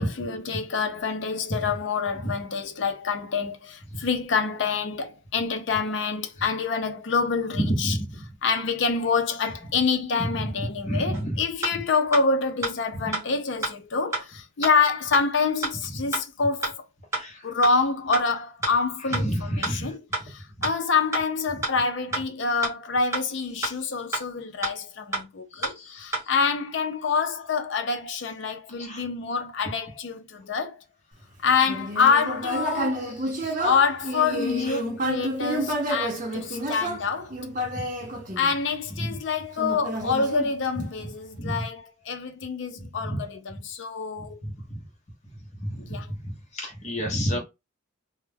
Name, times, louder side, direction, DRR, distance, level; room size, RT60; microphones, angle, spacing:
voice 1, 0.0-7.9 8.4-16.8 17.4-20.0 20.3-30.8 31.4-33.1 33.6-37.4 38.4-44.4 45.8-46.1, left 5 dB, 65° left, 0.5 m, -26 dB
voice 2, 7.6-8.2 10.2-10.5 10.8-11.3 12.9-13.0 16.0-16.1 17.1-17.5 19.2-19.9 20.6-20.7 25.5-26.3 28.8-29.0 33.0-33.7 34.6-34.8 36.5-36.7 37.7-37.8 39.0-39.2 41.4-41.6 43.0-43.2 44.4-44.8 45.6-47.4, equal, 35° left, 0.8 m, -31 dB
sound 1, 11.1-11.2 11.6-11.7 12.1-12.2 12.6-12.7 13.1-13.2 13.6-13.7 14.1-14.2 14.6-14.7 15.1-15.2 15.6-15.7 16.1-16.2 16.6-16.7 17.1-17.2 17.6-17.7 18.1-18.2 18.6-18.7 19.1-19.2 19.6-19.7 20.1-20.2 20.6-20.7 21.1-21.2 21.6-21.7 22.1-22.2 22.6-22.7 23.1-23.2 23.6-23.7 24.1-24.2 24.6-24.7 25.1-25.2 25.6-25.7 26.1-26.2, right 3 dB, 15° right, 0.9 m, -28 dB
Human voice, 31.6-39.0 39.6-41.0, right 1 dB, 40° right, 0.7 m, -30 dB
2.2 x 2.1 x 3.3 m
head